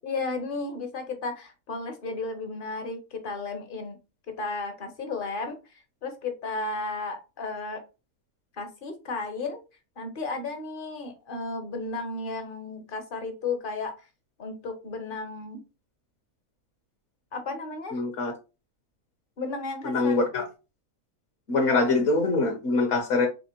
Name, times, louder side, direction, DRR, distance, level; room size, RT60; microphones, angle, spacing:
voice 1, 0.0-4.0 4.3-5.6 6.0-7.8 8.6-9.6 10.0-13.9 14.4-15.6 17.3-18.0 19.4-20.2, left 3 dB, 45° left, 0.9 m, -33 dB
voice 2, 17.9-18.3 19.8-20.4 21.5-23.3, left 3 dB, 60° left, 1.2 m, -24 dB
4.2 x 3.1 x 2.9 m
omnidirectional pair, 1.5 m